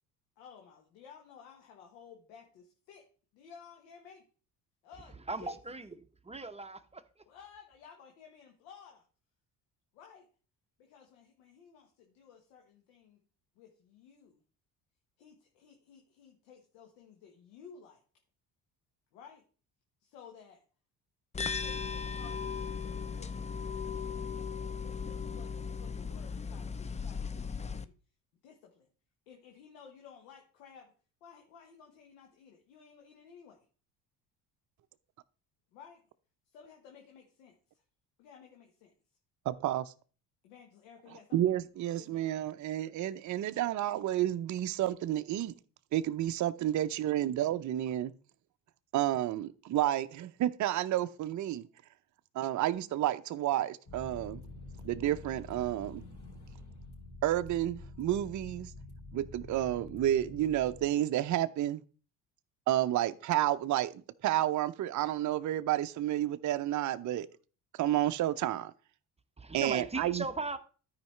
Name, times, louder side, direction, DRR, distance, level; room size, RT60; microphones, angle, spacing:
voice 1, 0.4-3.0 3.3-4.2 4.8-5.5 7.3-9.0 9.9-10.3 10.8-13.2 13.5-14.4 15.2-18.0 19.1-19.4 20.0-20.6 21.6-23.6 24.8-27.9 28.4-28.9 29.3-30.9 31.2-33.6 35.7-36.0 36.5-37.8 38.2-38.9 40.4-41.5 42.0-42.3, left 7 dB, 80° left, 1.4 m, -55 dB
voice 2, 5.3-5.9 6.2-7.2 69.4-70.6, right 3 dB, 15° right, 0.9 m, -38 dB
sound 1, 21.3-27.8, left 5 dB, 15° left, 0.5 m, -37 dB
voice 3, 39.5-39.9 41.3-45.5 45.9-48.1 48.9-51.7 52.3-54.4 54.8-56.0 57.2-58.7 59.1-61.8 62.7-63.9 64.2-67.3 67.8-68.7 69.5-70.2, right 13 dB, 40° right, 0.6 m, -30 dB
sound 2, 53.9-60.9, left 2 dB, 40° left, 3.6 m, -48 dB
13.0 x 4.8 x 3.2 m
hypercardioid pair, 60°, 48 cm